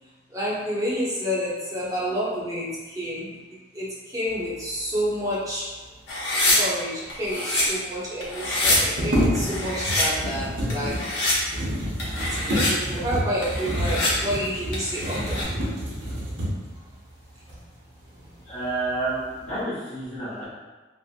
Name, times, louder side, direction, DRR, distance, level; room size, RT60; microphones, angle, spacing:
voice 1, 0.3-3.3 3.7-5.7 6.6-11.0 12.4-15.4, equal, 20° right, -8 dB, 0.8 m, -29 dB
sound 1, 6.1-6.6 7.1-7.6 8.2-8.8 9.3-10.0 10.7-11.3 12.0-12.7 13.4-14.1 14.7-15.4, left 2 dB, 65° left, 0.9 m, -25 dB
sound 2, 7.0-7.1 7.3-7.4 8.4-16.8 17.5-17.6 18.1-18.7 19.0-19.6, equal, 80° right, 0.8 m, -28 dB
voice 2, 18.4-20.5, right 2 dB, 35° left, -13 dB, 0.8 m, -29 dB
2.7 x 2.5 x 2.5 m, 1.2 s
head